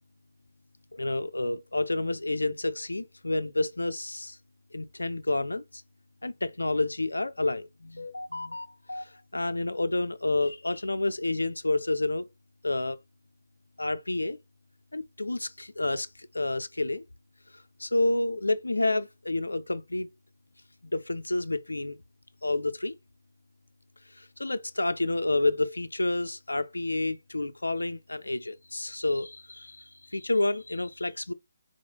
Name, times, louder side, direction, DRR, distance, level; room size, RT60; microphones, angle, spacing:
voice 1, 0.9-4.4 4.7-5.8 6.2-12.3 12.6-13.0 13.8-14.4 14.9-17.1 17.5-20.1 20.9-22.0 22.4-23.0 24.1-31.3, left 2 dB, 75° left, 0.3 m, -29 dB
3.9 x 3.2 x 2.3 m
figure-of-eight pair, 140°, 0 cm